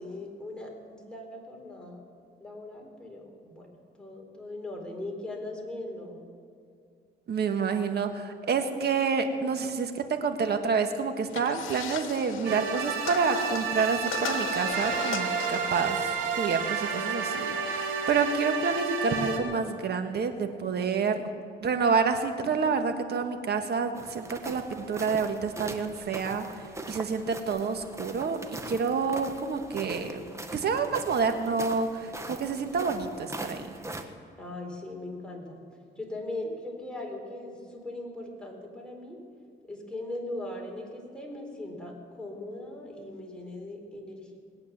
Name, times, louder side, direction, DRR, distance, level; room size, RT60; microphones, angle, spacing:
voice 1, 0.0-2.0 2.4-3.7 4.0-6.3 34.4-35.6 36.0-39.2 39.7-44.4, left 2 dB, 5° left, 0 dB, 4.1 m, -39 dB
voice 2, 7.3-21.3 21.6-30.2 30.5-33.7, right 5 dB, 55° right, 6 dB, 1.6 m, -28 dB
sound 1, 11.3-18.4, left 9 dB, 90° left, 1.0 m, -39 dB
sound 2, 12.5-19.4, right 6 dB, 85° right, 1.8 m, -31 dB
sound 3, 23.9-34.0, right 1 dB, 15° right, 1.3 m, -41 dB
20.5 x 8.8 x 7.3 m, 2.4 s
cardioid pair, 90°, 20 cm